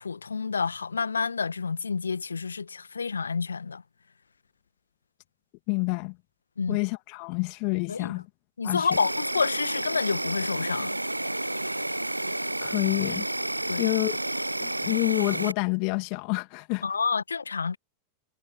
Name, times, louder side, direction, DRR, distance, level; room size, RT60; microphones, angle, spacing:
voice 1, 0.0-3.8 6.6-6.8 7.9-8.1 8.6-11.0 13.7-13.8 16.8-17.8, left 5 dB, 75° left, 1.9 m, -29 dB
voice 2, 5.7-6.2 6.7-8.2 8.6-8.9 12.6-13.2 13.8-14.2 14.6-16.8, left 40 dB or more, 45° left, 2.8 m, -28 dB
Insect, 8.9-15.5, right 1 dB, 85° right, 1.0 m, -30 dB
figure-of-eight pair, 90°, 0 cm